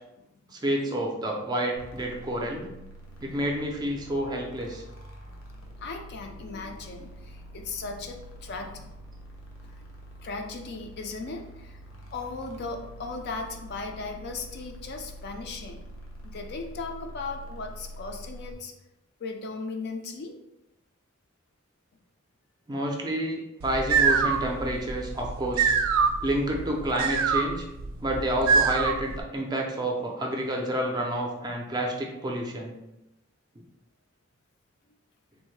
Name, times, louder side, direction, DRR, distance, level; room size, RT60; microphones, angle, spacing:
voice 1, 0.5-2.7 3.2-4.8 22.7-25.7 26.2-27.6 28.0-32.7, right 1 dB, 20° right, 0 dB, 0.4 m, -29 dB
sound 1, 1.8-18.5, right 1 dB, 85° left, 0.7 m, -45 dB
voice 2, 5.8-8.9 9.6-9.7 10.2-11.8 12.1-15.8 16.2-18.7 19.2-20.3, left 3 dB, 55° left, 3 dB, 0.4 m, -37 dB
sound 2, 23.6-29.2, right 5 dB, 90° right, 0.3 m, -25 dB
3.5 x 2.1 x 3.1 m, 0.91 s
head